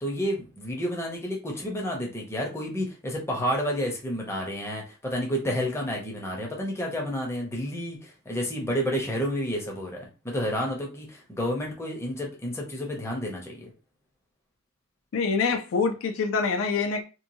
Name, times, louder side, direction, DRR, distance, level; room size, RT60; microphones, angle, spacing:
voice 1, 0.0-10.0 10.2-13.7, equal, 10° left, 0.6 m, -30 dB
voice 2, 15.1-17.0, left 5 dB, 70° left, 0.4 m, -25 dB
2.9 x 2.2 x 2.6 m
head